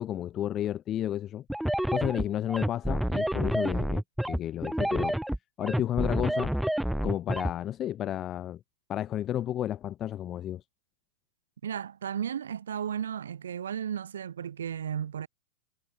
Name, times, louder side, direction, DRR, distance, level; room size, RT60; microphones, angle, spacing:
voice 1, 0.0-1.4 1.9-5.2 5.6-6.5 7.0-8.6 8.9-10.6, left 11 dB, 30° left, 4.2 m, -32 dB
sound 1, 1.5-7.5, right 1 dB, ahead, 3.5 m, -28 dB
voice 2, 11.6-15.3, right 8 dB, 85° right, 7.8 m, -34 dB
hypercardioid pair, 125°, 0 cm